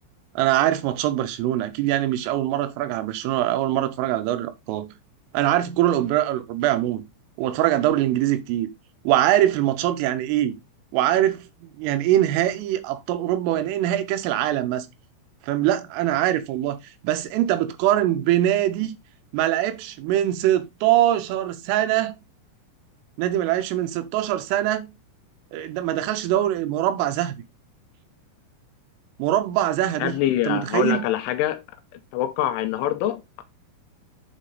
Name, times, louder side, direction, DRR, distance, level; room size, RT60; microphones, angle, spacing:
voice 1, 0.4-4.9 5.3-7.0 7.4-8.7 9.0-10.6 10.9-14.9 15.4-16.8 17.0-18.9 19.3-22.2 23.2-24.9 25.5-27.4 29.2-31.0, right 13 dB, 85° right, 3.4 m, -23 dB
voice 2, 30.0-31.6 32.1-33.4, left 12 dB, 85° left, 3.0 m, -24 dB
8.6 x 4.1 x 3.8 m
omnidirectional pair, 5.8 m